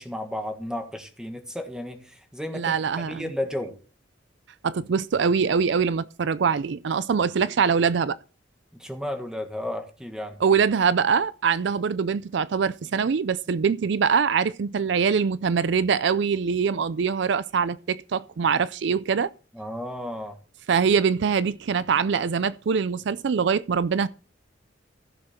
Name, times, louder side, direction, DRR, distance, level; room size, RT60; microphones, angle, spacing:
voice 1, 0.0-3.8 8.8-10.5 19.5-20.4, left 1 dB, 5° right, 1.5 m, -33 dB
voice 2, 2.5-3.2 4.6-8.2 10.4-19.3 20.7-24.1, right 6 dB, 65° right, 0.4 m, -23 dB
15.5 x 6.6 x 4.3 m
head